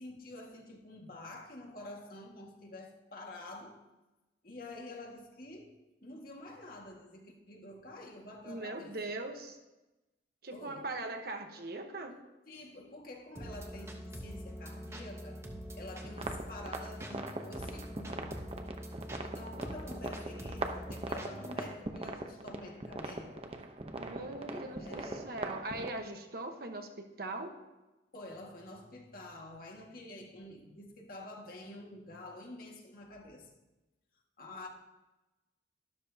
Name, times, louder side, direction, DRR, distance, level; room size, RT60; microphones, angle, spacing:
voice 1, 0.0-3.8 4.4-5.8 6.0-9.2 10.5-10.9 12.5-15.5 15.7-18.4 19.2-23.5 24.3-25.3 28.1-33.5 34.4-34.7, left 1 dB, 55° left, 0 dB, 1.9 m, -48 dB
voice 2, 8.4-9.6 10.4-12.2 23.9-27.5, right 2 dB, 55° right, 5 dB, 1.2 m, -40 dB
sound 1, 13.4-21.7, equal, 15° right, 1.2 m, -44 dB
sound 2, 16.0-25.9, right 2 dB, 35° right, 0.8 m, -41 dB
12.5 x 12.5 x 2.8 m, 1.0 s
head